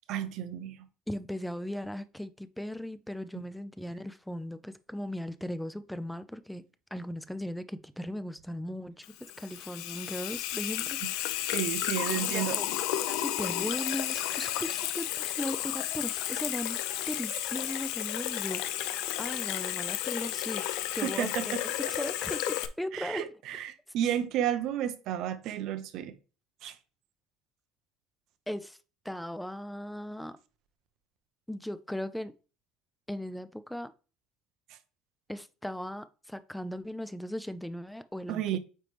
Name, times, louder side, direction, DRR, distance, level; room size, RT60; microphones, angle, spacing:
voice 1, 0.1-0.9 11.5-12.6 21.0-21.6 22.9-26.1 26.6-26.8 34.7-34.8 38.3-38.6, right 10 dB, 50° right, 0.7 m, -32 dB
voice 2, 1.1-6.6 6.9-11.5 12.2-23.3 28.5-28.8 29.0-30.4 31.5-32.3 33.1-33.9 35.3-38.6, equal, ahead, 0.3 m, -38 dB
Water tap faucet / Sink (filling or washing), 9.0-22.7, left 13 dB, 70° left, 0.5 m, -32 dB
8.9 x 3.2 x 3.3 m
cardioid pair, 165°, 0 cm